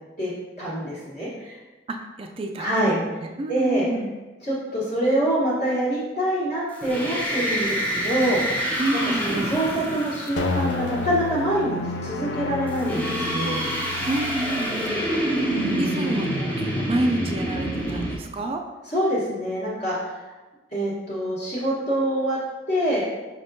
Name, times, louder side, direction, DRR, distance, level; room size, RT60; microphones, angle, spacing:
voice 1, 0.6-1.6 2.6-2.9 3.5-3.8 4.4-13.7 14.9-15.1 18.9-20.1 20.7-22.4 22.7-23.0, right 1 dB, 45° left, -10 dB, 1.2 m, -25 dB
voice 2, 1.9-4.1 8.8-9.5 14.1-15.2 15.8-18.6, right 1 dB, 30° right, 3 dB, 0.3 m, -28 dB
sound 1, 6.7-11.2 12.7-18.2, equal, 10° left, 0.7 m, -27 dB
sound 2, 10.4-16.8, left 4 dB, 70° left, 0.4 m, -32 dB
5.5 x 3.5 x 2.7 m, 1.2 s
head